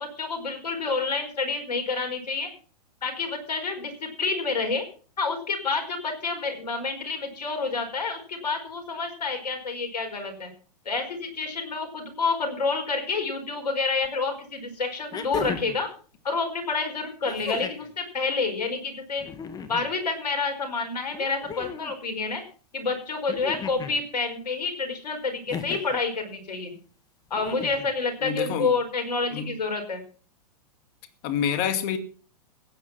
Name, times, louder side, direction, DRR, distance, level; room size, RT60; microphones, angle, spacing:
voice 1, 0.0-2.5 3.0-4.8 5.2-10.5 10.8-15.9 16.2-19.2 19.7-22.4 22.7-26.7 27.3-30.0, left 4 dB, 80° left, 4.9 m, -28 dB
sound 1, 14.0-14.1 15.1-15.8 17.2-17.9 19.2-19.9 21.1-21.9 23.3-24.0 25.5-26.0 27.3-27.9 29.2-29.3, left 6 dB, 20° left, 1.6 m, -35 dB
voice 2, 28.2-28.7 29.3-29.5 31.2-32.0, left 8 dB, 40° left, 2.2 m, -27 dB
15.5 x 9.5 x 5.9 m
hypercardioid pair, 120°, 21 cm